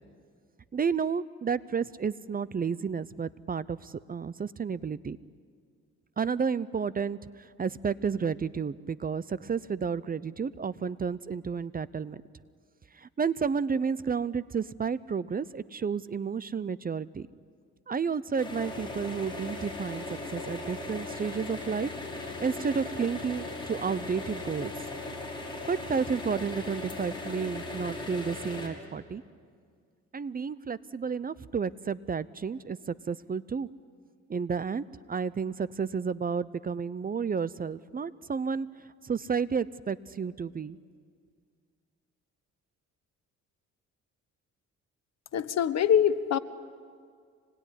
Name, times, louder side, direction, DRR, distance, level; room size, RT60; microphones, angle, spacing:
voice 1, 0.7-5.2 6.2-12.2 12.9-17.3 17.9-21.9 22.2-24.7 25.7-29.2 30.1-33.7 34.3-38.7 39.0-40.8, right 6 dB, 30° right, 18 dB, 0.6 m, -31 dB
sound 1, 18.4-28.7, left 2 dB, 15° left, 6.0 m, -38 dB
voice 2, 45.3-46.4, left 9 dB, 60° left, 13 dB, 1.2 m, -24 dB
26.0 x 20.5 x 10.0 m, 2.1 s
cardioid pair, 90°, 30 cm